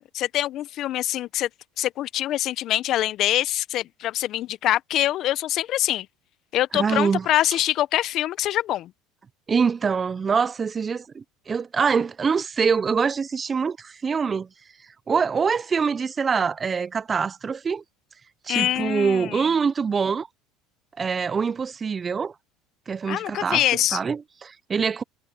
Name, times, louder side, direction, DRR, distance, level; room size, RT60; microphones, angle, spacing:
voice 1, 0.0-1.5 1.8-6.1 6.5-8.9 18.5-19.5 23.1-24.0, left 13 dB, 55° left, 0.9 m, -24 dB
voice 2, 6.7-7.3 9.5-14.5 15.1-17.8 18.4-20.3 21.0-22.3 22.9-23.6 23.9-25.0, right 5 dB, 30° right, 0.9 m, -24 dB
hypercardioid pair, 80°, 0 cm